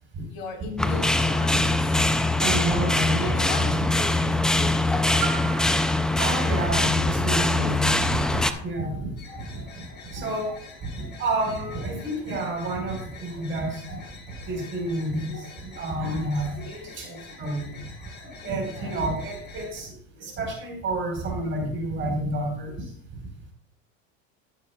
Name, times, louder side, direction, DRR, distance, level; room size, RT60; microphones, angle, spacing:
voice 1, 0.3-2.3 3.2-5.4 6.1-6.2 7.3-8.8 18.4-19.0, left 4 dB, 60° left, 1 dB, 3.8 m, -39 dB
sound 1, 0.8-8.5, left 2 dB, ahead, 0.4 m, -23 dB
voice 2, 2.4-3.7 6.2-7.9 8.3-9.6 10.1-10.5 10.9-14.0 14.5-17.7 18.4-19.9 20.2-22.9, right 1 dB, 35° right, 1 dB, 4.7 m, -29 dB
Piano, 8.7-10.6 11.4-11.5, right 10 dB, 60° right, 3.9 m, -41 dB
sound 2, 9.2-19.8, left 3 dB, 30° left, 4.4 m, -45 dB
17.0 x 7.3 x 2.3 m, 0.62 s
supercardioid pair, 125°, 32 cm